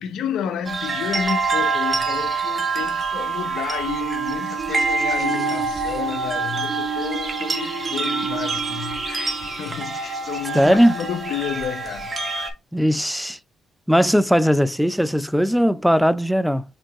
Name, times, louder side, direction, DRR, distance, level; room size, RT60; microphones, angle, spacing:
voice 1, 0.0-12.2, left 9 dB, 80° left, 0.7 m, -31 dB
sound 1, 0.7-12.5, right 4 dB, 30° right, 1.2 m, -26 dB
sound 2, 3.9-10.6, right 6 dB, 55° right, 0.9 m, -33 dB
voice 2, 10.5-11.0 12.7-13.4 13.9-16.6, equal, ahead, 0.4 m, -18 dB
5.3 x 2.8 x 3.5 m
cardioid pair, 90°, 0 cm